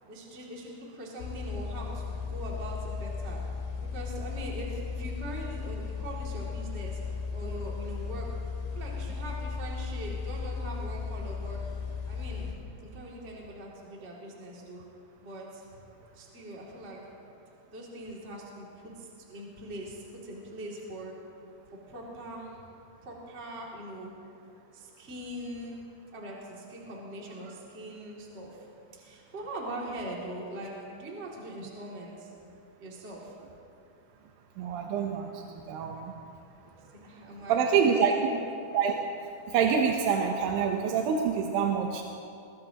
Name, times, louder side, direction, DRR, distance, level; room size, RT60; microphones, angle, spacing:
voice 1, 0.1-3.4 3.8-7.0 7.3-8.4 8.7-11.6 12.1-14.8 15.2-15.8 16.1-17.0 17.7-21.1 21.7-22.6 23.0-24.1 24.5-25.8 26.1-28.7 29.0-32.3 32.8-33.3 36.0-36.1 36.9-38.4, right 1 dB, 20° right, -4 dB, 2.2 m, -41 dB
sound 1, 1.2-12.5, left 5 dB, 85° left, 3.5 m, -36 dB
voice 2, 34.6-36.1 37.5-38.1 38.7-38.9 39.5-42.0, right 6 dB, 75° right, 2 dB, 2.5 m, -26 dB
23.5 x 20.5 x 3.0 m, 2.6 s
omnidirectional pair, 4.5 m